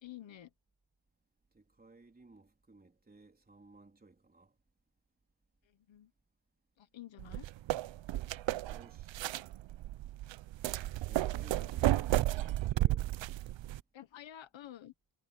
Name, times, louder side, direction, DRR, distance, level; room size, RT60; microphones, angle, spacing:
voice 1, 0.0-0.5 5.6-6.1 6.8-7.5 11.6-11.7 13.9-14.9, left 12 dB, 75° left, 1.4 m, -50 dB
voice 2, 1.5-4.5 8.7-9.3 11.0-13.1, right 3 dB, 20° right, 3.7 m, -58 dB
sound 1, 7.2-13.8, right 15 dB, 75° right, 0.7 m, -33 dB
wide cardioid pair, 145°, 46 cm